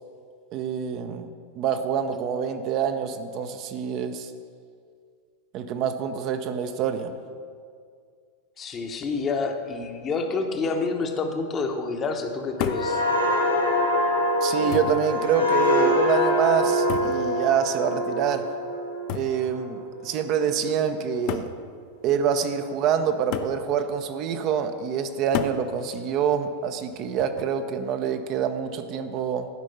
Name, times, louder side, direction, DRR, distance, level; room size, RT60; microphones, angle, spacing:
voice 1, 0.5-1.3 1.6-4.3 5.5-7.2 14.4-18.5 19.1-21.5 22.0-29.5, right 7 dB, 40° right, 8 dB, 0.5 m, -26 dB
voice 2, 8.6-13.0, left 4 dB, 25° left, 5 dB, 0.8 m, -28 dB
sound 1, 12.6-20.1 20.5-20.8, left 1 dB, 85° left, 1.3 m, -24 dB
sound 2, 12.6-13.0 14.0-14.1 14.7-15.1 16.9-17.3 19.1-19.4 20.4-20.5 21.3-21.6 23.3-23.6 25.3-25.7 27.2-27.6, left 9 dB, 45° left, 0.5 m, -31 dB
12.0 x 5.2 x 5.6 m, 2.2 s
figure-of-eight pair, 90°, 0 cm